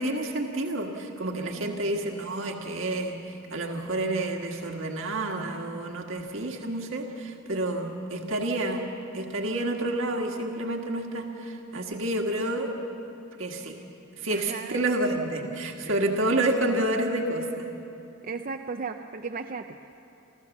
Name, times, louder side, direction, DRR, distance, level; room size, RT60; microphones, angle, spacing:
voice 1, 0.0-3.2 3.5-8.8 9.1-12.7 13.4-13.8 14.2-17.7, right 1 dB, 65° right, 2 dB, 1.7 m, -29 dB
voice 2, 7.9-8.3 14.3-14.8 15.8-16.0 18.2-20.0, right 4 dB, 40° right, 5 dB, 0.5 m, -37 dB
26.5 x 14.5 x 7.2 m, 2.7 s
head